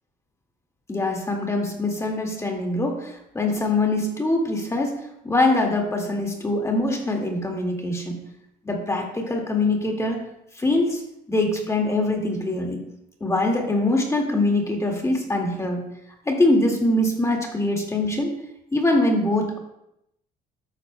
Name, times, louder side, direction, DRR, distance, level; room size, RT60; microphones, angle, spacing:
voice 1, 0.9-5.0 5.2-8.2 8.6-10.2 10.6-11.0 11.3-12.8 13.2-15.8 16.3-18.3 18.7-19.6, left 2 dB, 15° left, 1 dB, 1.9 m, -23 dB
13.0 x 10.0 x 2.2 m, 0.81 s
cardioid pair, 110°, 17 cm